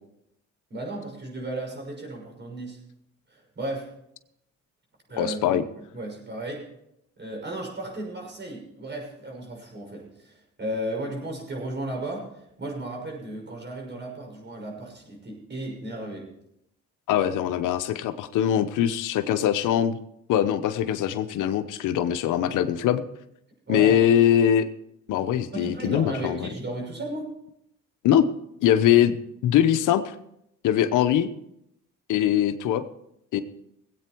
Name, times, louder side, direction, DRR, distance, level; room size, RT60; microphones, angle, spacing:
voice 1, 0.7-2.8 3.3-3.9 5.1-5.6 5.9-6.6 7.2-16.3 23.7-24.0 25.5-27.3, right 1 dB, 35° right, 0 dB, 6.3 m, -34 dB
voice 2, 5.2-5.6 17.1-20.0 20.3-23.0 23.7-24.7 25.1-26.5 28.0-28.2 28.6-29.2 29.4-30.1 30.6-31.3 32.1-32.8 33.3-33.4, left 10 dB, 90° left, 10 dB, 1.0 m, -22 dB
19.5 x 8.7 x 4.6 m, 0.78 s
cardioid pair, 90°, 30 cm